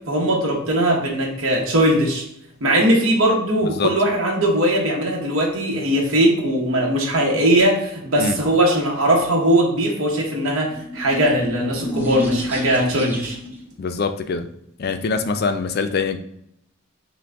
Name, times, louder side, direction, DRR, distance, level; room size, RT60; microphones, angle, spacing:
voice 1, 0.1-2.2 2.6-10.7 10.9-13.3, right 1 dB, 70° right, -2 dB, 1.0 m, -19 dB
sound 1, 10.7-13.7, left 1 dB, 10° right, 0.6 m, -28 dB
voice 2, 13.8-14.5 14.8-16.2, left 4 dB, 45° left, 9 dB, 0.4 m, -23 dB
6.0 x 2.2 x 3.4 m, 0.76 s
head